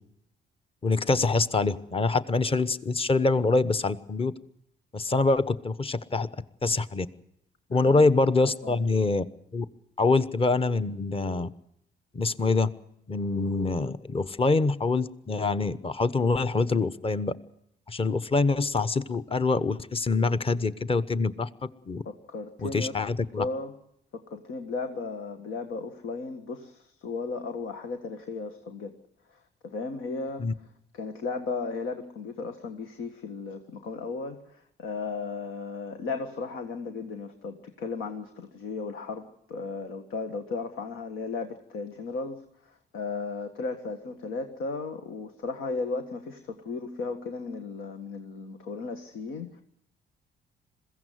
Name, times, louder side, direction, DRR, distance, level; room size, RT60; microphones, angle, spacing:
voice 1, 0.8-4.3 4.9-6.3 6.6-7.1 7.7-9.2 9.5-9.6 10.0-11.5 12.1-12.7 13.1-17.3 17.9-22.0 22.6-23.4 30.4-30.5, left 3 dB, 30° left, 12 dB, 1.1 m, -25 dB
voice 2, 8.4-8.8 22.1-22.9 23.4-23.7 24.1-28.9 29.3-30.5 30.9-49.6, left 4 dB, 85° left, 6 dB, 1.7 m, -35 dB
21.5 x 16.0 x 9.4 m, 0.75 s
cardioid pair, 90°, 20 cm